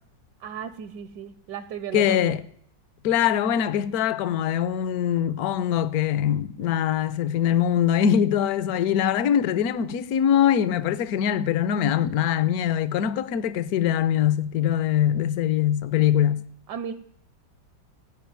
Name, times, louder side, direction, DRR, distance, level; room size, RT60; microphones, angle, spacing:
voice 1, 0.4-2.4 16.7-16.9, right 9 dB, 75° right, 1.2 m, -35 dB
voice 2, 1.9-2.4 3.0-16.4, left 9 dB, 65° left, 1.0 m, -23 dB
15.5 x 5.3 x 9.3 m
omnidirectional pair, 1.9 m